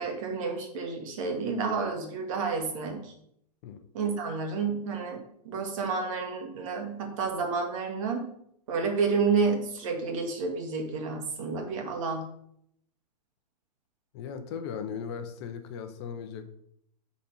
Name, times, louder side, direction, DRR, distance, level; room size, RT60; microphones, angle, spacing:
voice 1, 0.0-3.1 3.9-5.2 5.5-8.3 8.7-12.2, right 4 dB, 50° right, 3 dB, 2.1 m, -30 dB
voice 2, 14.1-16.5, left 7 dB, 40° left, 8 dB, 0.8 m, -37 dB
8.5 x 4.2 x 5.5 m, 0.71 s
hypercardioid pair, 150°, 21 cm